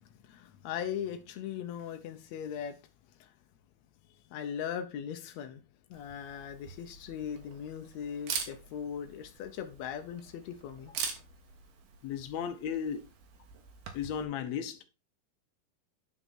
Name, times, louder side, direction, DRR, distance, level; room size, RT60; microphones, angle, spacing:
voice 1, 0.2-2.8 3.2-3.3 4.3-5.6 5.9-11.0, left 8 dB, 85° left, 1.5 m, -39 dB
Camera, 5.9-14.2, right 6 dB, 75° right, 3.4 m, -43 dB
voice 2, 12.0-13.0 13.9-14.8, left 8 dB, 70° left, 1.7 m, -35 dB
9.8 x 5.7 x 4.4 m
omnidirectional pair, 4.4 m